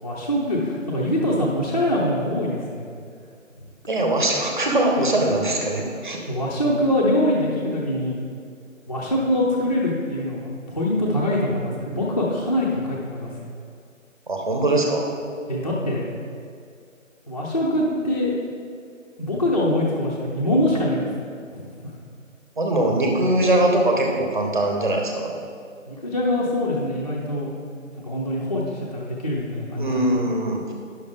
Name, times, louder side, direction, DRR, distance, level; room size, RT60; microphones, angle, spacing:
voice 1, 0.0-2.9 6.3-8.2 8.9-13.4 15.5-16.1 17.3-18.3 19.2-21.1 21.5-21.9 25.9-27.5 28.0-30.3, left 1 dB, 30° left, -6 dB, 0.6 m, -24 dB
voice 2, 3.9-6.2 14.3-15.1 22.6-25.3 29.8-30.7, right 1 dB, 35° right, 1 dB, 1.0 m, -21 dB
9.8 x 6.4 x 3.5 m, 2.2 s
figure-of-eight pair, 165°, 40 cm